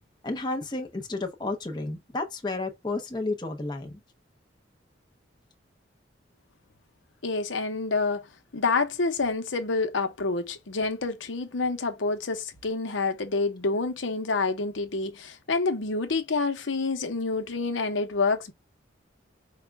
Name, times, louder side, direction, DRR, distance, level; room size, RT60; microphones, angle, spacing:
voice 1, 0.2-4.0, left 2 dB, 20° left, 0.6 m, -32 dB
voice 2, 7.2-8.3 8.5-18.5, left 3 dB, 80° left, 0.8 m, -28 dB
4.9 x 2.2 x 3.4 m
head